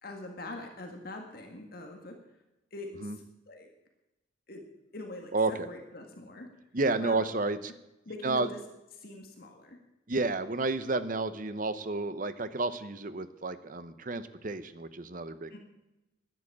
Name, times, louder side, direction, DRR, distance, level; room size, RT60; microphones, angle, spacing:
voice 1, 0.0-2.2 2.7-3.7 4.5-4.6 4.9-6.5 7.0-7.2 8.1-8.6 9.0-9.8 15.5-15.6, left 2 dB, 50° left, 3 dB, 1.8 m, -43 dB
voice 2, 5.3-5.7 6.7-7.7 8.2-8.5 10.1-15.5, right 3 dB, 45° right, 12 dB, 0.8 m, -31 dB
11.0 x 11.0 x 8.5 m, 0.96 s
head